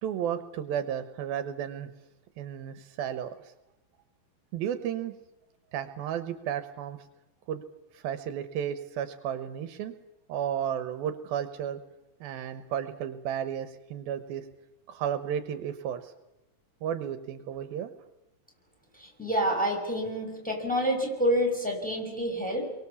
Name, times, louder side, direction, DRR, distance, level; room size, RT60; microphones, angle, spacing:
voice 1, 0.0-1.9 2.4-3.3 4.5-5.1 5.7-7.0 7.5-7.6 7.9-9.9 10.3-11.8 12.2-14.4 14.9-16.1 16.8-17.9, right 9 dB, 80° right, 9 dB, 2.9 m, -33 dB
voice 2, 19.0-22.7, equal, ahead, 1 dB, 6.1 m, -28 dB
30.0 x 23.5 x 7.1 m, 0.93 s
omnidirectional pair, 4.3 m